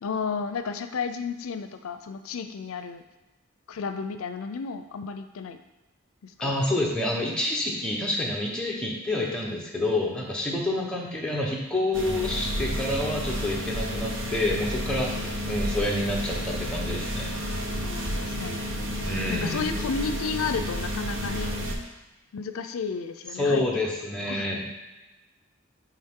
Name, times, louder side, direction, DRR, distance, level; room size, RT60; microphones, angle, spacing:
voice 1, 0.0-3.0 3.7-5.6 6.2-6.5 17.8-18.6 19.3-21.5 22.3-23.6 24.3-24.6, left 5 dB, 90° left, 9 dB, 0.5 m, -32 dB
voice 2, 6.4-17.4 19.0-19.7 23.4-24.6, left 1 dB, 5° left, -3 dB, 1.0 m, -28 dB
sound 1, 11.9-21.7, equal, 65° right, 0.9 m, -31 dB
9.0 x 3.5 x 3.7 m, 1.1 s
head